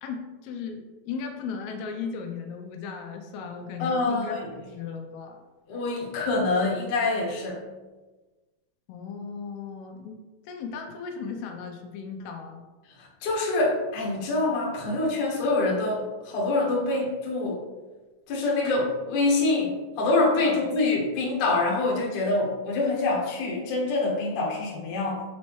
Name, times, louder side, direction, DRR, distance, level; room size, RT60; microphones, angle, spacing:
voice 1, 0.0-5.4 8.9-10.2 10.4-12.6 20.4-20.6, left 5 dB, 90° left, 3 dB, 2.6 m, -36 dB
voice 2, 3.8-4.5 5.7-7.6 13.0-17.6 18.3-25.3, left 2 dB, 60° left, -3 dB, 2.5 m, -25 dB
7.3 x 4.3 x 3.0 m, 1.2 s
omnidirectional pair, 4.4 m